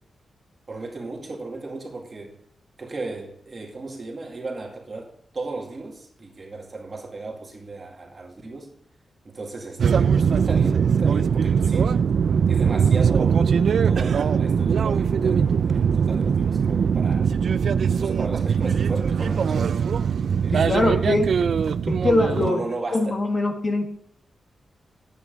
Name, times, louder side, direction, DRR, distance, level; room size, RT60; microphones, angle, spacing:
voice 1, 0.7-2.4 2.8-8.8 9.2-11.9 12.5-17.3 17.8-19.7 20.4-21.2 22.3-23.2, right 3 dB, 30° right, 2.2 m, -35 dB
sound 1, 9.8-22.5, right 6 dB, 55° right, 0.4 m, -21 dB
voice 2, 20.5-21.3 21.9-22.6 22.9-23.9, left 2 dB, 30° left, 1.5 m, -22 dB
10.5 x 8.7 x 5.2 m
wide cardioid pair, 165°, 0 cm